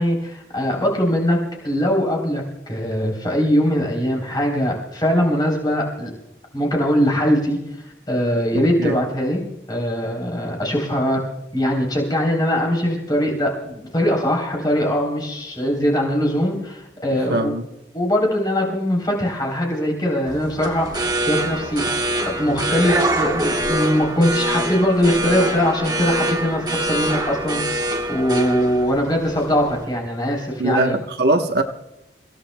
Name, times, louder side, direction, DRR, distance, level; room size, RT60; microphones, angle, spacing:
voice 1, 0.0-6.1 6.5-9.4 9.7-11.2 11.5-17.5 17.9-21.8 22.2-31.0, equal, 25° left, 3.4 m, -21 dB
voice 2, 17.3-17.6 30.6-31.6, right 2 dB, 60° right, 1.0 m, -20 dB
sound 1, 20.3-29.8, right 1 dB, 20° right, 1.2 m, -25 dB
29.5 x 16.5 x 2.2 m
head